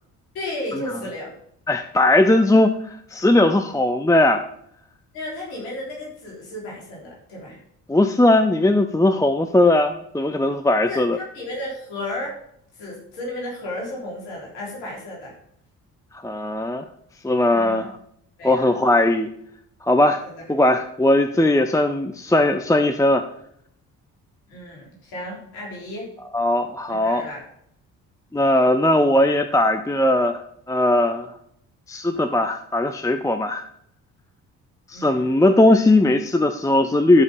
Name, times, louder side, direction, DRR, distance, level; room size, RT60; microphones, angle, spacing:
voice 1, 0.3-1.3 5.1-7.6 10.9-12.4 12.7-15.4 17.5-17.8 18.4-18.7 20.2-20.3 24.5-26.1 26.9-27.4 34.9-35.3, left 1 dB, 70° left, -4 dB, 3.7 m, -33 dB
voice 2, 1.7-2.8 3.1-4.4 7.9-11.2 16.2-16.8 17.2-17.9 18.4-19.3 19.8-20.2 20.5-23.2 26.3-27.3 28.3-30.4 30.7-31.3 31.9-33.6 34.9-37.2, left 1 dB, 5° left, 7 dB, 0.8 m, -18 dB
13.0 x 5.3 x 5.4 m, 0.72 s
figure-of-eight pair, 45°, 48 cm